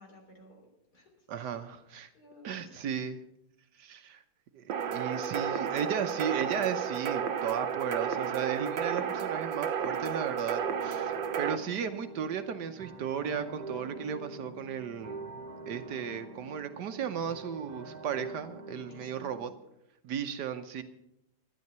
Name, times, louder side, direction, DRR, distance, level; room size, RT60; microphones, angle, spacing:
voice 1, 0.0-1.6 2.1-3.0 18.7-19.4, left 1 dB, 55° left, 1 dB, 4.0 m, -55 dB
voice 2, 1.3-2.1 2.4-3.2 3.8-4.2 4.5-4.6 4.9-15.3 15.7-19.5 20.0-20.8, right 8 dB, 70° right, 9 dB, 1.4 m, -35 dB
sound 1, 4.7-11.6, right 7 dB, 85° right, 1.5 m, -32 dB
sound 2, 10.6-19.5, right 3 dB, 50° right, 2.0 m, -45 dB
12.5 x 10.5 x 6.7 m, 0.81 s
omnidirectional pair, 2.0 m